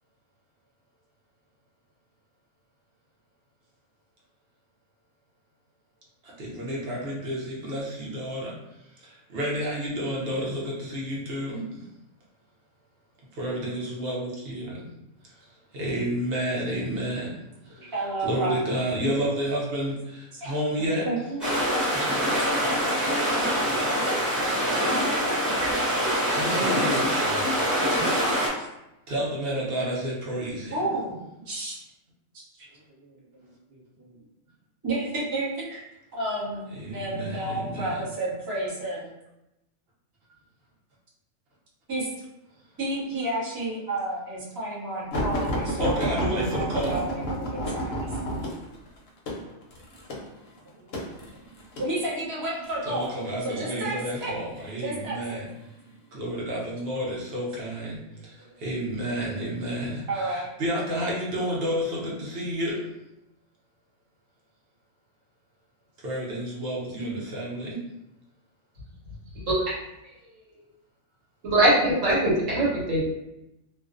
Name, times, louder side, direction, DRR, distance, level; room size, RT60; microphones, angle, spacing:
voice 1, 6.2-8.5 8.9-11.8 13.3-14.8 15.2-15.3 15.7-17.3 17.6-21.1 26.3-27.7 28.6-28.7 29.1-30.9 36.7-38.0 45.8-46.9 52.8-55.5 56.1-62.8 66.0-67.8, equal, 55° right, -4 dB, 0.8 m, -30 dB
voice 2, 17.8-18.8 20.4-20.5 20.8-21.4 30.7-31.8 32.3-32.7 33.0-33.2 33.4-34.1 34.8-35.8 36.1-39.1 41.9-42.1 42.8-48.1 50.8-51.0 51.8-53.1 53.4-54.3 54.8-55.4 58.5-58.6 60.1-60.6, right 2 dB, 30° right, -6 dB, 0.3 m, -31 dB
sound 1, 21.4-28.5, equal, ahead, 0.8 m, -24 dB
sound 2, 45.1-51.9 52.7-53.1 54.1-54.7 55.4-55.6 56.0-56.1, equal, 60° left, 0.7 m, -30 dB
voice 3, 69.5-69.8 71.4-73.0, right 1 dB, 70° right, -5 dB, 1.1 m, -22 dB
2.5 x 2.1 x 2.4 m, 0.90 s
omnidirectional pair, 1.4 m